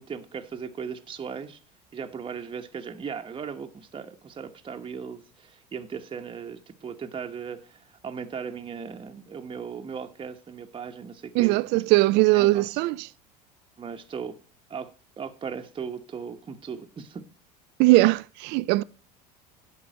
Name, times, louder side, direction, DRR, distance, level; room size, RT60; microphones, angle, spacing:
voice 1, 0.0-1.6 1.9-12.1 12.3-12.9 13.8-14.4 14.7-17.2, right 6 dB, 25° right, 1.0 m, -37 dB
voice 2, 11.3-13.1 17.8-18.8, right 21 dB, 60° right, 0.4 m, -20 dB
10.5 x 3.9 x 7.6 m
hypercardioid pair, 85°, 21 cm